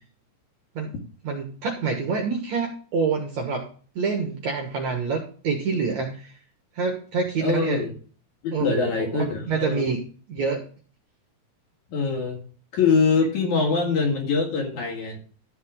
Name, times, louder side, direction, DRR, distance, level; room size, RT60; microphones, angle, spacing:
voice 1, 1.2-3.7 4.0-6.3 6.7-7.8 8.5-10.0 10.3-10.6, right 5 dB, 60° right, 2 dB, 2.0 m, -27 dB
voice 2, 7.4-7.9 8.4-10.0 11.9-12.4 12.7-15.2, left 5 dB, 55° left, 0 dB, 3.1 m, -23 dB
13.0 x 7.6 x 3.7 m, 0.41 s
omnidirectional pair, 4.6 m